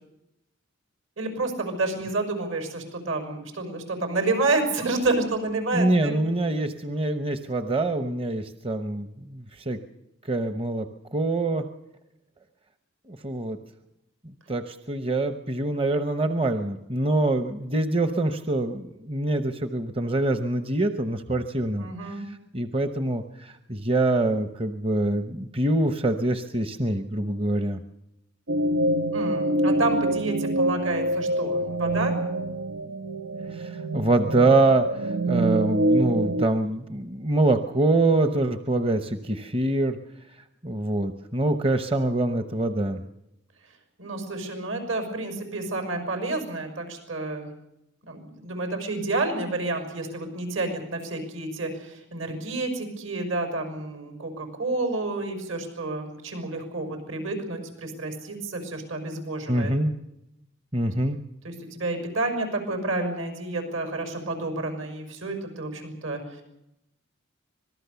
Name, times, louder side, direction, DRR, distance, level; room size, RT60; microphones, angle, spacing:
voice 1, 1.2-6.1 21.8-22.2 29.1-32.2 44.0-47.5 48.1-59.7 61.4-66.4, right 2 dB, 75° right, 6 dB, 6.2 m, -29 dB
voice 2, 5.7-9.8 10.2-10.9 11.1-11.6 13.1-13.6 14.5-27.8 33.5-40.0 40.6-43.0 59.5-59.9 60.7-61.2, right 2 dB, 25° right, 8 dB, 0.9 m, -25 dB
sound 1, 28.5-36.5, right 1 dB, 90° right, 1.0 m, -26 dB
25.5 x 19.5 x 7.0 m, 0.87 s
head